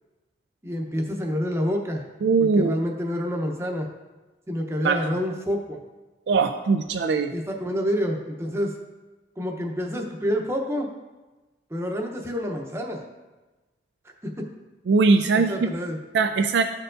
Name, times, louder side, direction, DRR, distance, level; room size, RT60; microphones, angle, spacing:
voice 1, 0.6-2.0 2.6-3.9 4.5-5.8 7.3-8.8 9.4-10.9 11.7-13.0 14.2-14.5 15.3-16.0, equal, 15° right, 2 dB, 0.7 m, -28 dB
voice 2, 2.2-2.8 4.8-5.0 6.3-7.3 14.9-15.7 16.1-16.6, right 4 dB, 80° right, 7 dB, 0.3 m, -20 dB
13.0 x 4.5 x 2.5 m, 1.2 s
head